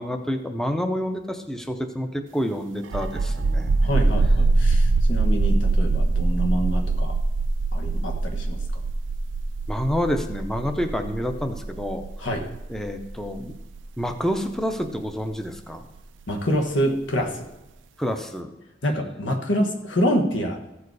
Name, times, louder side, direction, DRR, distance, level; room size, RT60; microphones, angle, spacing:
voice 1, 0.0-3.7 9.7-12.0 12.7-13.6 14.0-15.9 18.0-18.5, equal, 5° left, 6 dB, 0.6 m, -28 dB
sound 1, 2.8-16.2, right 3 dB, 75° right, 0.4 m, -23 dB
voice 2, 3.8-7.1 7.7-8.6 12.2-12.4 16.3-17.4 18.8-20.6, equal, 85° left, 4 dB, 1.3 m, -26 dB
14.5 x 4.8 x 4.7 m, 1.0 s
head